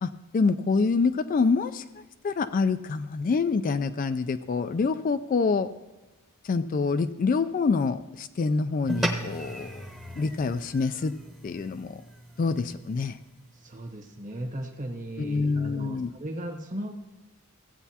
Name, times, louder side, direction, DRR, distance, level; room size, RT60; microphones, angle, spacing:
voice 1, 0.0-1.8 2.2-5.7 6.4-9.9 10.2-11.1 11.4-12.0 12.4-13.2 15.2-16.1, left 4 dB, 40° left, 10 dB, 0.3 m, -26 dB
sound 1, 8.9-13.5, equal, ahead, 0.9 m, -35 dB
voice 2, 13.5-16.9, right 1 dB, 35° right, 4 dB, 1.2 m, -37 dB
16.0 x 8.1 x 2.8 m, 1.1 s
head